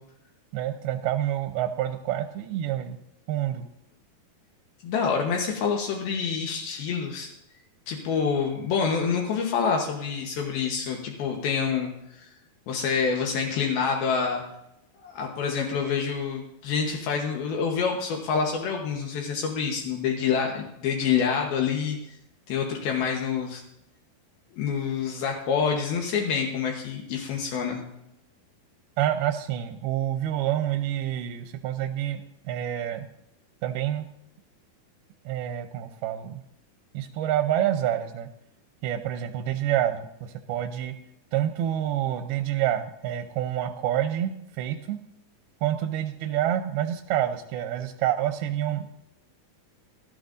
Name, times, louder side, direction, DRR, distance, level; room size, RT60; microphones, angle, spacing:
voice 1, 0.5-3.0 3.3-3.7 29.0-33.1 33.6-34.1 35.3-36.4 36.9-38.3 38.8-40.9 41.3-45.0 45.6-48.9, right 11 dB, 90° right, 6 dB, 2.6 m, -28 dB
voice 2, 4.8-7.3 7.9-12.3 12.7-14.4 15.0-22.0 22.5-23.6 24.5-27.8, left 6 dB, 75° left, 1 dB, 3.0 m, -27 dB
18.0 x 13.0 x 2.6 m, 0.83 s
omnidirectional pair, 4.5 m